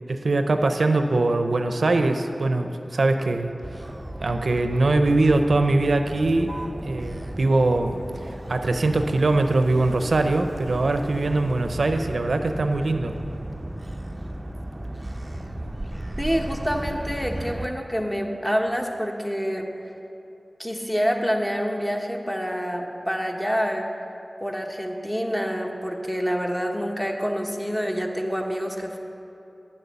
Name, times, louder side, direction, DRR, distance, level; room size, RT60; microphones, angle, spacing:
voice 1, 0.1-3.5 4.2-6.5 6.9-8.0 8.3-13.1, right 2 dB, 85° right, 6 dB, 0.6 m, -22 dB
Motor vehicle (road), 3.6-17.7, right 1 dB, 20° right, 0.6 m, -35 dB
voice 2, 16.2-19.7 20.6-23.9 24.4-29.0, equal, 10° left, 2 dB, 1.1 m, -27 dB
9.8 x 6.7 x 7.0 m, 2.8 s
wide cardioid pair, 65°, 0 cm